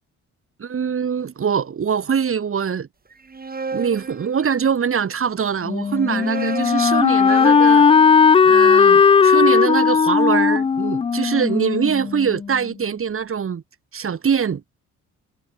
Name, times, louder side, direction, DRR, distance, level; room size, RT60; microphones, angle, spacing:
voice 1, 0.6-2.9 3.7-7.9 8.4-13.6 13.9-14.8, right 7 dB, 45° right, 3.8 m, -23 dB
sound 1, 3.1-5.0 5.8-9.9, right 4 dB, 30° right, 8.0 m, -34 dB
Wind instrument woodwind instrument, 5.7-12.5, left 6 dB, 20° left, 0.3 m, -16 dB
cardioid pair, 90°, 30 cm